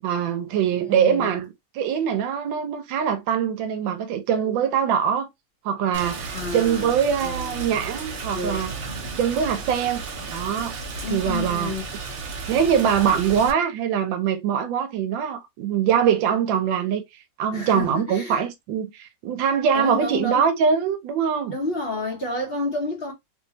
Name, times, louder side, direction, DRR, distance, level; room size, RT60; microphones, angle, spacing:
voice 1, 0.0-5.3 5.6-8.7 9.2-10.0 10.3-10.8 11.1-11.7 12.5-21.6, right 8 dB, 85° right, 1.3 m, -23 dB
voice 2, 0.7-1.3 6.2-7.0 7.2-7.9 8.3-8.6 11.0-11.8 17.5-18.4 19.7-20.5 21.5-23.1, left 2 dB, 40° left, 0.9 m, -30 dB
Rain, 5.9-13.5, right 4 dB, 50° right, 0.8 m, -34 dB
3.2 x 2.6 x 2.7 m
omnidirectional pair, 2.0 m